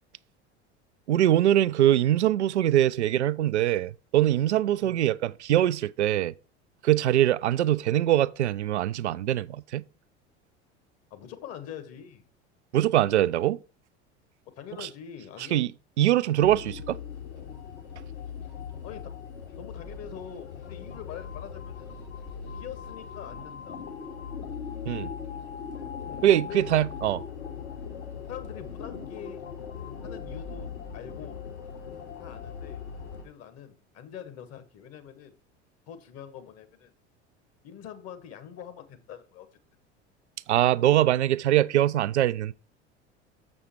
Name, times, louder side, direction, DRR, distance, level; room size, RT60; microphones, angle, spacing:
voice 1, 1.1-6.3 6.8-9.8 12.7-13.6 14.8-14.9 15.5-15.7 16.0-17.0 24.9-25.1 26.2-27.2 40.5-42.5, right 12 dB, 75° right, 0.5 m, -23 dB
voice 2, 11.1-12.3 14.4-15.6 18.8-19.2 19.6-22.0 22.5-23.8 26.1-26.7 28.3-29.4 30.0-31.5 32.2-32.9 33.2-35.3 35.9-36.9 37.6-39.5, left 9 dB, 45° left, 1.5 m, -44 dB
sound 1, 16.4-33.2, left 7 dB, 70° left, 2.5 m, -39 dB
7.2 x 6.3 x 4.3 m
figure-of-eight pair, 70°, 35 cm